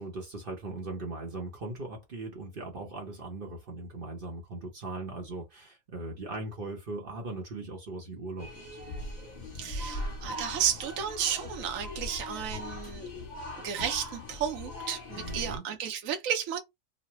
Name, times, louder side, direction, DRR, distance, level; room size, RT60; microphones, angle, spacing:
voice 1, 0.0-8.8 15.1-15.6, right 2 dB, 45° right, 0.9 m, -39 dB
sound 1, 8.4-15.6, left 1 dB, 35° left, 1.1 m, -39 dB
voice 2, 9.5-13.1 13.6-16.6, right 9 dB, 75° right, 1.0 m, -33 dB
3.1 x 2.1 x 2.9 m
omnidirectional pair, 1.5 m